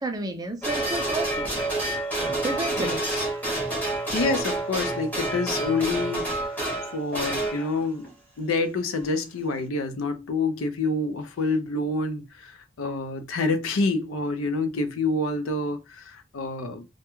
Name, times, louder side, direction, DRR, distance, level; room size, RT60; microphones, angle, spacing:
voice 1, 0.0-2.0 2.4-3.0, right 2 dB, 20° right, 0.4 m, -32 dB
sound 1, 0.6-8.1 9.0-9.1, right 1 dB, 10° left, 0.8 m, -28 dB
voice 2, 2.8-3.3 4.1-6.3 6.9-8.1 8.4-16.9, left 3 dB, 90° left, 0.5 m, -27 dB
2.3 x 2.1 x 2.9 m
head